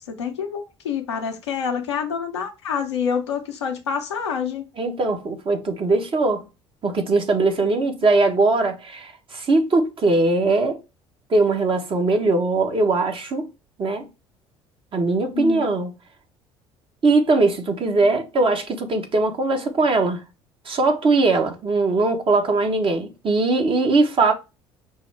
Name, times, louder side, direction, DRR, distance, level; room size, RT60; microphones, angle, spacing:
voice 1, 0.1-4.7 15.3-15.7, left 6 dB, 85° left, 0.8 m, -27 dB
voice 2, 4.8-6.5 6.8-10.8 11.3-13.5 13.8-14.1 14.9-15.9 17.0-20.2 20.6-24.3, right 3 dB, 40° right, 1.2 m, -20 dB
5.3 x 2.1 x 4.6 m
hypercardioid pair, 60°, 14 cm